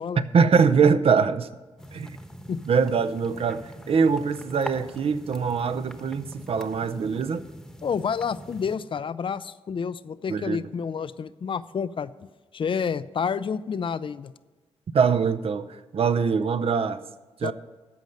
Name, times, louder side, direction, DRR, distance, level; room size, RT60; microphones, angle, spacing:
voice 1, 0.2-1.5 1.9-2.2 2.7-7.4 10.3-10.7 14.9-15.7 15.9-17.0 17.4-17.5, right 5 dB, 60° right, 0.6 m, -23 dB
sound 1, 1.8-8.8, equal, 5° left, 1.0 m, -43 dB
voice 2, 7.8-12.3 12.5-14.3 17.4-17.5, left 6 dB, 50° left, 0.4 m, -29 dB
13.5 x 5.2 x 7.8 m
cardioid pair, 75°, 11 cm